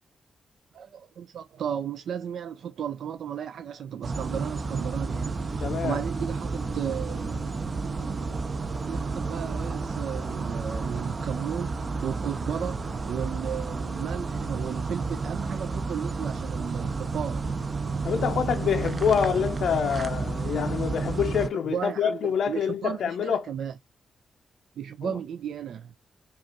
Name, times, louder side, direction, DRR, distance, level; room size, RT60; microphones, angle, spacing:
voice 1, 0.7-7.6 8.9-17.5 21.7-23.8 24.8-25.9, right 8 dB, 85° right, 0.3 m, -34 dB
sound 1, 4.0-21.5, right 4 dB, 45° right, 0.6 m, -31 dB
voice 2, 5.6-6.0 18.0-23.5 25.0-25.1, left 7 dB, 80° left, 0.5 m, -26 dB
5.1 x 2.4 x 2.8 m
cardioid pair, 80°, 0 cm